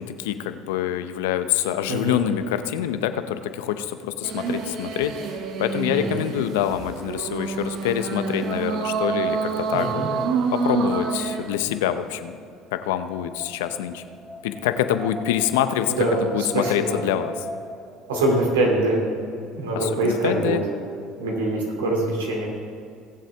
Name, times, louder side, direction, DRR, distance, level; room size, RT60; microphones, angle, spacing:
voice 1, 0.0-10.0 10.5-12.4 12.7-14.0 14.4-17.3 19.7-20.6, left 11 dB, 80° left, 10 dB, 0.7 m, -26 dB
sound 1, 4.2-11.6, right 4 dB, 60° right, 1.0 m, -27 dB
voice 2, 5.9-6.2 9.7-10.1 15.9-16.3 16.5-17.0 18.1-19.0 19.3-20.6 21.2-22.5, right 2 dB, 90° right, -1 dB, 2.6 m, -24 dB
Wind, 10.4-18.0, equal, ahead, 2.3 m, -40 dB
20.5 x 7.5 x 3.4 m, 2.4 s
hypercardioid pair, 75°, 0 cm